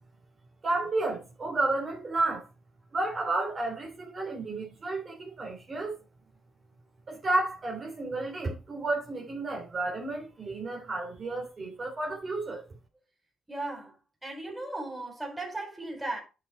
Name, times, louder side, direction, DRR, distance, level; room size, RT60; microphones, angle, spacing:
voice 1, 0.6-2.4 2.9-6.0 7.1-12.6, right 2 dB, 40° right, 2.9 m, -31 dB
voice 2, 13.5-14.0 14.2-16.2, right 2 dB, 10° right, 4.2 m, -36 dB
8.6 x 5.5 x 4.3 m
cardioid pair, 90°, 0 cm